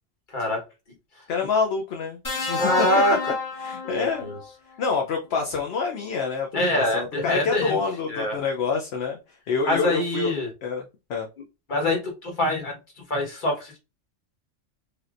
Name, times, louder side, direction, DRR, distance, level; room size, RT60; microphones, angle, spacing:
voice 1, 0.3-0.6 2.6-3.2 3.8-4.4 6.5-7.8 8.1-8.4 9.6-10.5 11.7-12.8 13.1-13.8, left 1 dB, 40° left, 0 dB, 1.3 m, -24 dB
voice 2, 1.3-2.9 3.6-4.4 4.8-6.5 6.7-10.3 10.6-10.8 11.1-11.3, left 5 dB, 65° left, 2 dB, 0.8 m, -27 dB
sound 1, 2.2-4.5 5.8-6.0, left 4 dB, 20° left, 0.7 m, -30 dB
3.3 x 2.8 x 2.4 m, 0.27 s
omnidirectional pair, 1.3 m